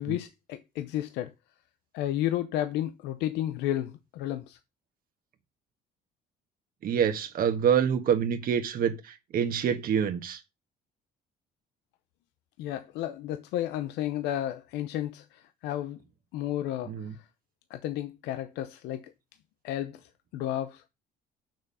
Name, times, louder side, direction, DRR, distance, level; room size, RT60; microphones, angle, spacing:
voice 1, 0.0-1.3 1.9-4.6 12.6-16.0 16.3-17.3 17.7-19.1 19.6-20.9, left 12 dB, 90° left, 0.7 m, -32 dB
voice 2, 6.8-10.4 16.8-17.1, right 8 dB, 60° right, 1.5 m, -26 dB
6.9 x 6.2 x 5.5 m
cardioid pair, 110°, 17 cm